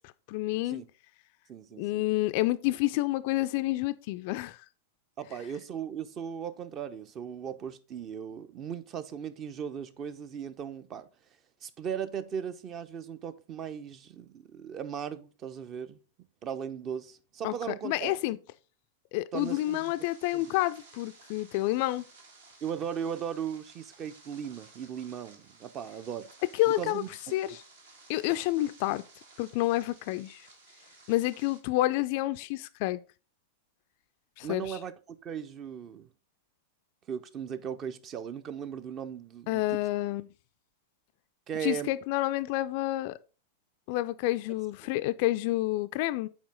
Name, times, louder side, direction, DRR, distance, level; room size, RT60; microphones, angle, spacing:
voice 1, 0.3-0.8 1.8-4.6 17.4-18.4 19.1-22.0 26.5-27.0 27.3-27.6 28.1-29.0 29.4-30.5 31.1-33.0 34.4-34.8 39.5-40.3 41.6-43.2 43.9-46.3, left 17 dB, 45° left, 0.3 m, -29 dB
voice 2, 1.5-2.0 5.2-11.1 11.6-16.0 16.4-18.1 19.3-19.8 20.3-20.5 22.6-26.3 26.7-27.3 34.4-36.1 37.1-39.8 41.5-41.9 44.9-45.0, right 8 dB, 30° right, 0.6 m, -37 dB
sound 1, 19.3-31.6, right 3 dB, 65° right, 1.5 m, -56 dB
7.3 x 4.7 x 3.8 m
figure-of-eight pair, 95°, 0 cm